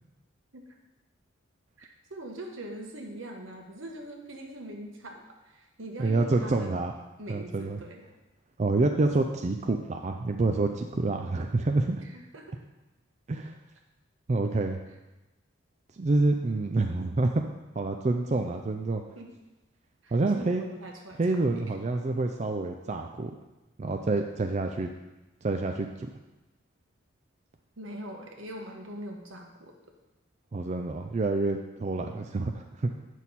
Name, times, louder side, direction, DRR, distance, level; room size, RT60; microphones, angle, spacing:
voice 1, 1.8-6.8 7.2-8.0 9.0-9.3 12.0-12.6 18.2-18.4 19.2-19.3 20.0-21.8 27.8-29.7, right 1 dB, 80° right, 2 dB, 1.3 m, -42 dB
voice 2, 6.0-6.9 7.3-7.8 8.6-12.0 13.3-13.5 14.3-14.8 16.0-17.4 17.7-19.0 20.1-20.6 21.2-23.3 23.8-24.9 25.4-26.1 30.5-32.9, right 2 dB, 35° right, 4 dB, 0.4 m, -27 dB
8.8 x 6.3 x 4.1 m, 1.1 s
head